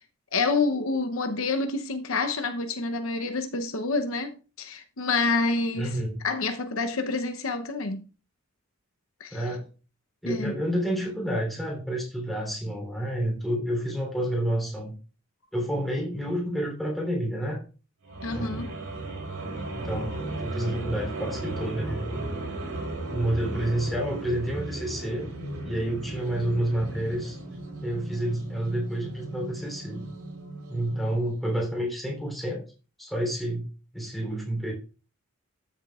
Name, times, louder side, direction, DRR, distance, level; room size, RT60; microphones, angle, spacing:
voice 1, 0.3-5.9 6.2-8.0 9.2-9.4 10.2-10.5 18.2-18.7, left 3 dB, 70° left, 0.8 m, -28 dB
voice 2, 5.7-6.2 9.3-9.7 10.2-14.9 15.5-17.6 18.3-18.7 19.7-22.3 23.1-25.3 25.6-27.4 27.8-30.0 30.7-32.6 33.0-33.7 33.9-34.7, right 1 dB, ahead, 3.3 m, -29 dB
sound 1, 18.0-31.3, right 2 dB, 85° right, 3.8 m, -36 dB
13.0 x 7.2 x 2.4 m
head